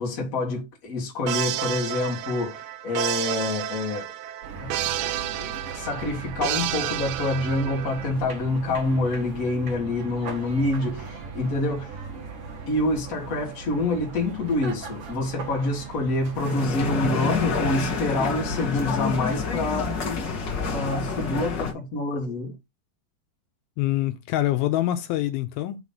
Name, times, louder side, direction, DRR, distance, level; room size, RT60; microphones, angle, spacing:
voice 1, 0.0-4.1 4.6-4.9 5.4-11.9 12.7-20.2 20.7-22.6, left 2 dB, 35° left, 1.5 m, -27 dB
sound 1, 1.3-8.1, right 13 dB, 80° right, 2.5 m, -31 dB
sound 2, 4.4-21.5, right 4 dB, 50° right, 1.9 m, -39 dB
sound 3, 16.3-21.7, left 5 dB, 60° left, 1.1 m, -28 dB
voice 2, 23.8-25.8, left 14 dB, 85° left, 2.5 m, -25 dB
6.0 x 3.1 x 5.5 m
omnidirectional pair, 4.4 m